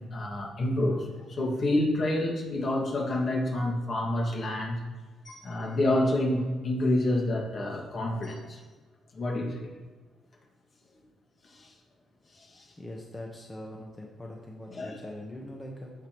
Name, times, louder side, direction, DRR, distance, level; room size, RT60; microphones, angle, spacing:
voice 1, 0.1-4.8 5.3-8.6 9.1-9.7 11.6-11.7 12.5-12.6 14.7-15.1, left 1 dB, 50° left, -1 dB, 2.0 m, -28 dB
voice 2, 12.8-15.9, left 1 dB, 15° left, -1 dB, 1.1 m, -42 dB
14.5 x 5.2 x 3.1 m, 1.3 s
cardioid pair, 90°, 0 cm